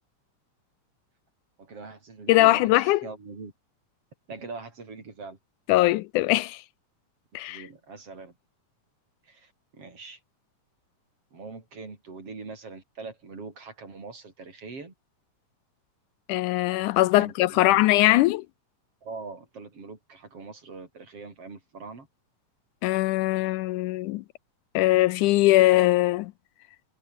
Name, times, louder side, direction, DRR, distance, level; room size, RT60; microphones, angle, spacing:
voice 1, 1.6-3.5 4.3-5.4 7.5-8.4 9.2-10.2 11.3-14.9 17.1-17.8 19.0-22.1, right 4 dB, 45° right, 5.5 m, -42 dB
voice 2, 2.3-3.1 5.7-6.6 7.3-7.7 16.3-18.5 22.8-24.2 24.7-26.3, left 17 dB, 80° left, 2.0 m, -21 dB
omnidirectional pair, 3.7 m